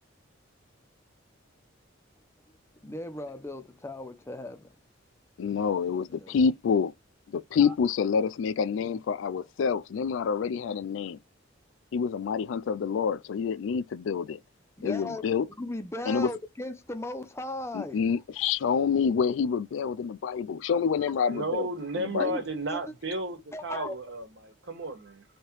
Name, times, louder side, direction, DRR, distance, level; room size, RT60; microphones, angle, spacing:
voice 1, 2.8-4.7 6.1-6.4 7.6-7.7 14.8-15.2 15.6-18.0 22.2-22.4 22.7-22.8 23.5-24.0, left 1 dB, 15° left, 0.5 m, -37 dB
voice 2, 5.4-6.9 7.3-11.2 11.9-14.4 14.8-15.5 16.1-16.3 17.7-21.7 22.0-22.3, left 6 dB, 70° left, 0.3 m, -27 dB
voice 3, 21.3-25.2, right 1 dB, 60° right, 1.2 m, -33 dB
3.2 x 2.9 x 4.4 m
head